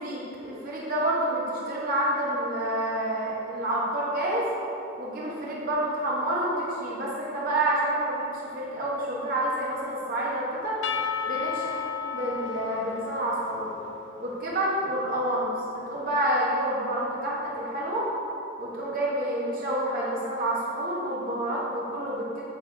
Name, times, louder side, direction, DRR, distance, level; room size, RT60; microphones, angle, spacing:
voice 1, 0.0-4.5 5.0-10.8 11.3-11.7 12.0-13.8 14.2-18.1 18.6-22.4, right 1 dB, 45° right, -6 dB, 1.4 m, -28 dB
Percussion / Church bell, 10.8-14.7, left 7 dB, 65° left, 0.5 m, -34 dB
8.9 x 5.0 x 4.8 m, 2.9 s
head